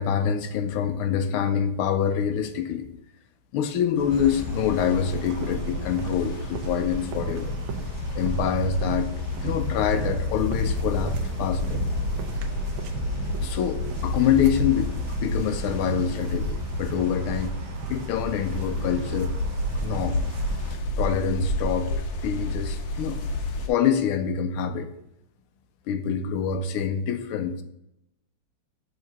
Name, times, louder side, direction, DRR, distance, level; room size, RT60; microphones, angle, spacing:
voice 1, 0.0-2.9 3.5-7.5 8.2-9.1 9.4-11.8 13.4-17.5 17.9-19.3 19.7-20.2 21.0-23.2 23.7-24.9 25.9-27.6, left 8 dB, 80° left, 8 dB, 1.5 m, -26 dB
sound 1, 4.0-20.8, right 4 dB, 75° right, 1.4 m, -36 dB
sound 2, 4.1-23.7, left 2 dB, 65° left, 1.4 m, -30 dB
6.6 x 3.7 x 5.9 m, 0.83 s
omnidirectional pair, 2.4 m